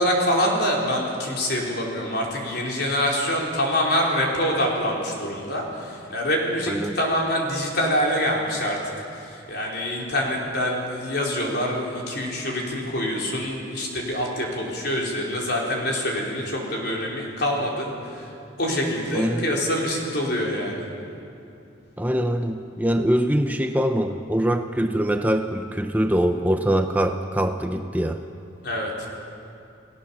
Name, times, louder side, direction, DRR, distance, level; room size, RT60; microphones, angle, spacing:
voice 1, 0.0-8.8 9.1-18.3 18.6-20.8 28.6-29.1, equal, 55° left, -2 dB, 4.5 m, -25 dB
voice 2, 6.7-7.0 19.1-19.5 22.0-28.2, right 1 dB, 10° right, 6 dB, 0.6 m, -23 dB
29.5 x 18.0 x 7.3 m, 2.7 s
head